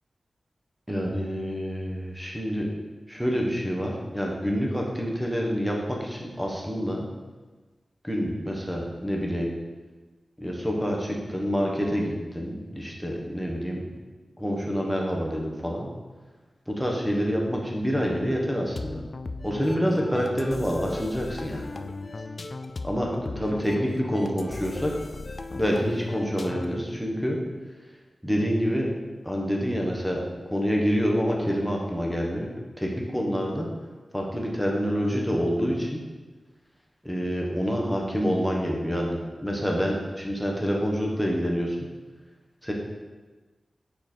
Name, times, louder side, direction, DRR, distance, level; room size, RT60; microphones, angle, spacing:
voice 1, 0.9-2.7 3.1-7.0 8.0-9.5 10.4-13.8 14.4-15.9 16.7-19.0 19.4-21.7 22.8-24.9 25.5-27.4 28.2-28.9 29.2-30.2 30.5-33.7 34.1-36.0 37.0-41.8 42.6-42.7, equal, ahead, -1 dB, 1.1 m, -27 dB
sound 1, 18.8-26.9, left 3 dB, 45° left, 0.3 m, -37 dB
5.7 x 4.2 x 4.3 m, 1.3 s
wide cardioid pair, 95°, 0 cm